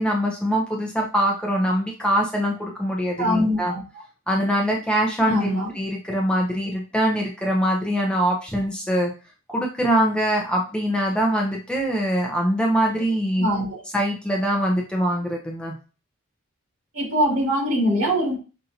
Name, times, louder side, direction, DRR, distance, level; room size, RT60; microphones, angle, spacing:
voice 1, 0.0-3.7 4.3-5.5 5.7-9.1 9.5-13.5 13.9-15.7, equal, 5° left, 0.6 m, -23 dB
voice 2, 3.2-3.8 5.3-5.7 13.4-13.8 16.9-18.4, equal, 65° right, 2.3 m, -22 dB
5.6 x 2.6 x 2.7 m
head